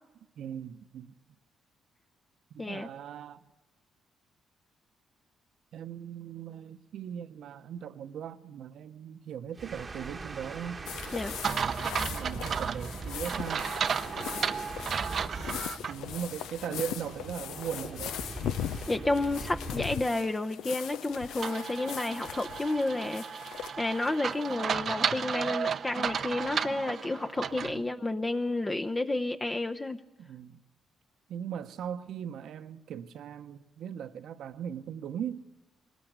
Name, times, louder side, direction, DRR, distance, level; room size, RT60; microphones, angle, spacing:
voice 1, 0.4-1.1 2.5-3.4 5.7-10.8 12.0-13.7 14.3-14.5 15.9-18.2 27.5-27.9 30.2-30.6 31.3-35.4, right 8 dB, 70° right, 11 dB, 1.0 m, -39 dB
sound 1, 9.5-20.1, right 4 dB, 30° right, 1.1 m, -42 dB
sound 2, 10.9-24.5, left 10 dB, 85° left, 0.7 m, -40 dB
sound 3, 11.4-15.9 16.4-16.5 21.4-27.8, right 7 dB, 55° right, 0.7 m, -33 dB
voice 2, 18.9-30.0, left 2 dB, 20° left, 6 dB, 0.8 m, -31 dB
21.0 x 19.0 x 8.0 m, 1.1 s
cardioid pair, 90°, 0 cm